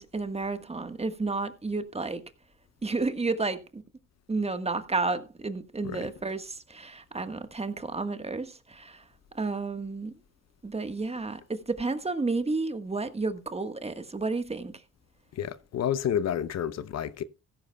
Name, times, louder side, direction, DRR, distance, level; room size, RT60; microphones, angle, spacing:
voice 1, 0.0-2.2 2.8-3.8 4.3-10.2 10.6-14.8, right 3 dB, 20° right, 1.4 m, -31 dB
voice 2, 15.3-17.2, left 9 dB, 60° left, 0.8 m, -30 dB
15.5 x 14.0 x 2.3 m
cardioid pair, 90°, 30 cm